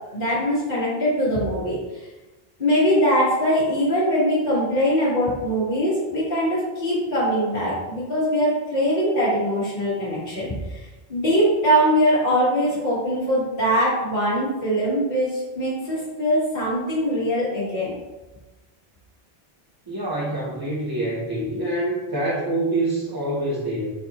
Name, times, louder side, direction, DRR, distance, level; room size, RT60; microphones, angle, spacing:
voice 1, 0.1-1.8 2.6-17.9, equal, 50° left, -13 dB, 1.5 m, -22 dB
voice 2, 19.9-23.9, right 1 dB, 25° right, -6 dB, 0.5 m, -26 dB
4.2 x 4.0 x 2.9 m, 1.1 s
omnidirectional pair, 1.1 m